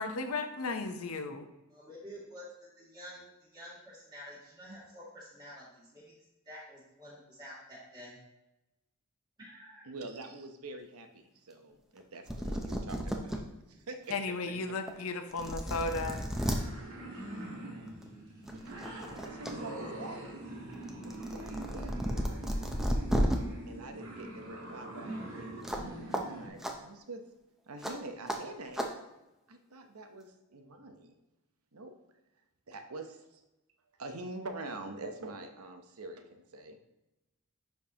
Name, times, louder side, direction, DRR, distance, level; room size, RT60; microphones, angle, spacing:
voice 1, 0.0-1.5 14.1-16.3, left 3 dB, 80° left, 7 dB, 0.7 m, -35 dB
voice 2, 1.7-2.5 2.8-6.1 6.5-8.2 9.4-9.9 14.4-14.6, equal, 20° right, -7 dB, 2.4 m, -49 dB
voice 3, 9.8-14.3 14.9-15.0 18.5-18.8 19.1-20.2 20.8-22.7 23.7-27.2 27.7-28.9 29.5-31.2 31.7-31.9 32.7-33.4 34.0-36.8, right 2 dB, 85° right, 6 dB, 0.8 m, -46 dB
sound 1, 12.0-12.1 12.3-13.4 13.9-14.0 14.9-15.0 15.3-16.6 17.9-18.1 18.5-19.5 19.9-23.4 25.6-25.9 26.1-26.2 26.6-26.7 27.8-27.9 28.3-28.4 28.7-28.9, equal, ahead, 0.5 m, -33 dB
sound 2, 15.8-26.5, right 1 dB, 65° right, 1.6 m, -43 dB
10.5 x 4.5 x 2.9 m, 0.96 s
head